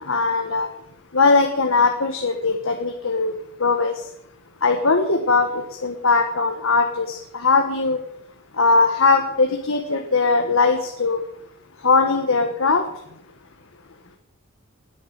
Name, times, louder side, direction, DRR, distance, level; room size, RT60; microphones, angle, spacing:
voice 1, 0.1-0.7 1.1-3.9 4.6-5.5 5.8-8.0 8.6-11.2 11.8-12.8, left 4 dB, 75° left, 4 dB, 1.5 m, -20 dB
20.0 x 8.7 x 6.6 m, 0.78 s
head